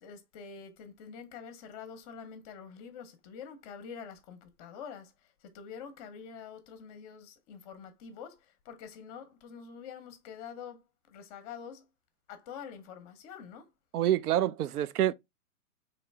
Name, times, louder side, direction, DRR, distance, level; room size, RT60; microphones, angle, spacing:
voice 1, 0.0-5.1 5.4-8.4 8.7-10.8 11.1-11.8 12.3-13.7, left 6 dB, 25° left, 0.7 m, -46 dB
voice 2, 13.9-15.1, right 12 dB, 75° right, 0.5 m, -27 dB
3.8 x 2.9 x 3.3 m
hypercardioid pair, 140°, 46 cm